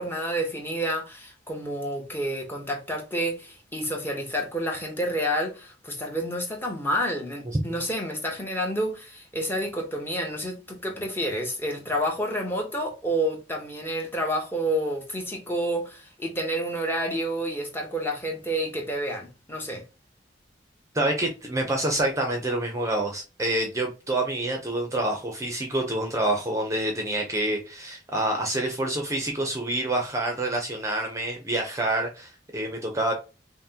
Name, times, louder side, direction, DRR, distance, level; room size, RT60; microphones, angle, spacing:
voice 1, 0.0-19.8, equal, 15° left, 1.0 m, -29 dB
voice 2, 20.9-33.1, right 1 dB, 15° right, 0.6 m, -27 dB
5.7 x 2.2 x 2.8 m
head